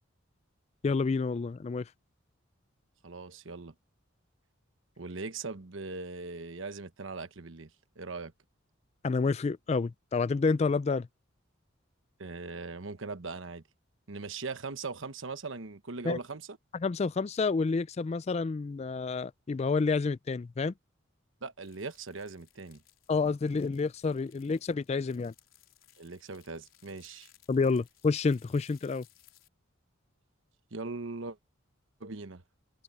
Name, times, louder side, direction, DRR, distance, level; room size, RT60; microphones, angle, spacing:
voice 1, 0.8-1.9 9.0-11.1 16.0-16.2 16.8-20.7 23.1-25.3 27.5-29.0, left 4 dB, 30° left, 0.3 m, -29 dB
voice 2, 3.0-3.7 5.0-7.7 8.0-8.3 12.2-13.6 14.1-16.6 21.4-22.8 26.0-27.3 30.7-31.4 32.0-32.4, right 3 dB, 75° right, 1.2 m, -40 dB
sound 1, 21.6-29.5, left 13 dB, 85° left, 3.9 m, -63 dB
head